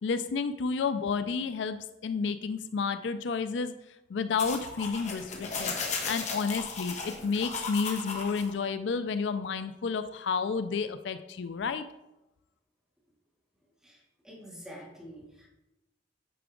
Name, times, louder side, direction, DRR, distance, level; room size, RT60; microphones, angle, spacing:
voice 1, 0.0-1.8 2.0-3.7 4.1-5.7 6.0-11.9, left 5 dB, 75° left, 11 dB, 0.4 m, -31 dB
sound 1, 4.4-8.5, left 4 dB, 40° left, 1.3 m, -36 dB
voice 2, 14.2-15.5, equal, 5° right, -5 dB, 2.5 m, -46 dB
9.2 x 6.0 x 3.7 m, 0.96 s
head